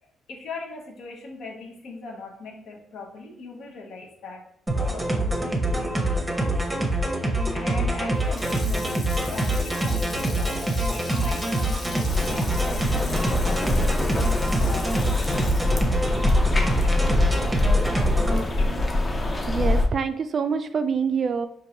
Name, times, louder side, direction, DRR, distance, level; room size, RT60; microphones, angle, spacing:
voice 1, 0.0-4.5 4.7-6.6 7.5-14.0 14.6-15.5 16.7-17.0 18.3-18.9, left 3 dB, 75° left, 0.8 m, -40 dB
sound 1, 4.7-18.4, right 1 dB, 10° right, 0.7 m, -25 dB
Water tap faucet / Sink (filling or washing), 8.1-17.3 17.7-17.8, left 2 dB, 50° left, 1.0 m, -41 dB
sound 2, 12.1-19.9, left 2 dB, 25° left, 0.5 m, -24 dB
voice 2, 19.5-21.5, right 6 dB, 50° right, 0.3 m, -25 dB
4.5 x 2.5 x 2.8 m
cardioid pair, 90°, 0 cm